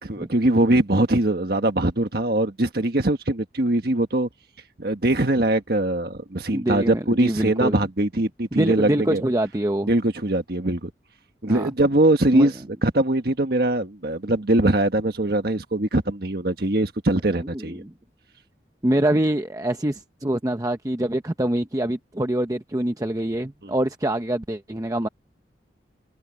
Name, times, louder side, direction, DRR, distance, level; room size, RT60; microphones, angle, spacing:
voice 1, 0.0-4.3 4.8-9.2 9.9-10.9 11.4-12.5 12.8-17.8 23.6-23.7, right 1 dB, 60° right, 1.5 m, -22 dB
voice 2, 6.5-7.8 8.5-9.9 11.5-11.7 12.3-12.5 17.4-17.9 18.8-25.1, right 1 dB, 20° right, 0.8 m, -25 dB
head